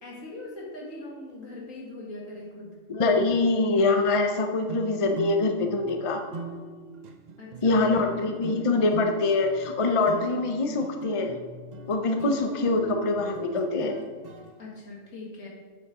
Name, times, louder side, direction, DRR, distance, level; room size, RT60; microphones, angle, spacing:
voice 1, 0.0-2.8 7.4-8.3 8.5-8.8 14.6-15.5, left 2 dB, 85° left, -3 dB, 2.3 m, -41 dB
voice 2, 2.9-6.2 7.6-11.4 11.9-14.0, left 3 dB, 30° left, 5 dB, 0.6 m, -24 dB
sound 1, 4.7-14.5, right 4 dB, 45° right, 0.6 m, -41 dB
7.7 x 6.9 x 4.9 m, 1.5 s
omnidirectional pair, 1.3 m